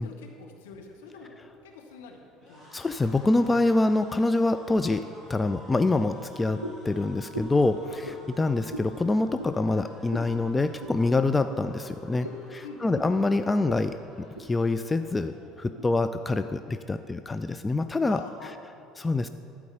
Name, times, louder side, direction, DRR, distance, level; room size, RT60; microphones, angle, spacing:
voice 1, 0.0-1.3 1.6-2.7 7.9-8.0 12.2-13.0 18.1-18.8, left 4 dB, 65° left, 1 dB, 1.2 m, -45 dB
sound 1, 0.9-16.1 16.5-16.7 17.0-17.8, equal, 5° right, 2.7 m, -52 dB
voice 2, 2.7-5.0 5.3-12.3 12.5-13.9 14.4-18.5 19.0-19.3, left 2 dB, 15° left, 10 dB, 0.3 m, -25 dB
sound 2, 6.6-6.9 7.3-7.6 8.0-8.2 8.7-8.9 9.4-9.6 10.1-10.3 10.8-11.0 11.5-11.6 12.2-12.4 12.9-13.1 13.6-13.8 14.1-14.5 15.0-15.2 15.8-15.9, right 1 dB, 85° right, 0.5 m, -38 dB
12.0 x 4.7 x 6.7 m, 2.7 s
figure-of-eight pair, 60°, 0 cm